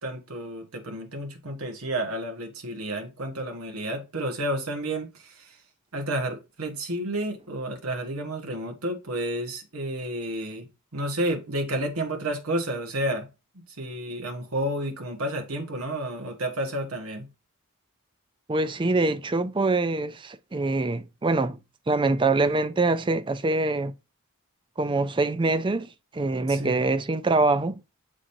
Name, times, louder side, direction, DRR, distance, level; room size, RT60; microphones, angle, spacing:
voice 1, 0.0-5.6 5.9-10.7 10.9-13.3 13.5-17.3 26.5-26.9, right 1 dB, 80° right, 1.4 m, -31 dB
voice 2, 18.5-21.6 21.9-23.9 24.8-27.8, right 3 dB, 20° right, 0.4 m, -24 dB
7.3 x 5.1 x 2.7 m
head